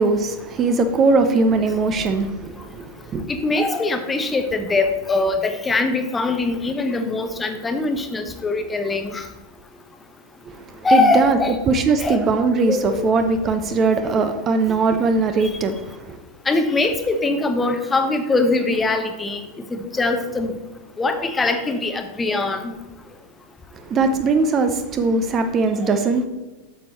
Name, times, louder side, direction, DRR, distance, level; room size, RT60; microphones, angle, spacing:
voice 1, 0.0-3.3 10.5-11.4 11.7-16.2 23.8-26.2, right 3 dB, 25° right, 0.6 m, -20 dB
voice 2, 3.3-9.2 10.8-11.6 12.0-12.2 12.7-13.1 16.5-19.4 19.7-20.5 21.0-22.7, left 3 dB, 15° left, 0.8 m, -22 dB
8.6 x 7.0 x 3.0 m
figure-of-eight pair, 90°, 0 cm